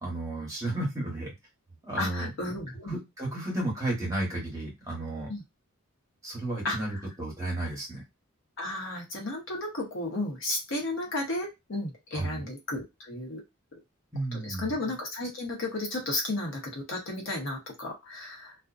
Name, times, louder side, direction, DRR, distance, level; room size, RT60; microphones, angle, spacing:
voice 1, 0.0-1.3 1.8-2.3 2.9-5.3 6.2-8.0 12.1-12.5 14.1-14.7, right 1 dB, 15° right, -4 dB, 1.1 m, -33 dB
voice 2, 2.0-3.0 5.3-5.4 6.6-7.0 8.6-13.4 14.3-18.5, left 2 dB, 60° left, 0 dB, 0.8 m, -33 dB
2.5 x 2.1 x 2.4 m, 0.21 s
head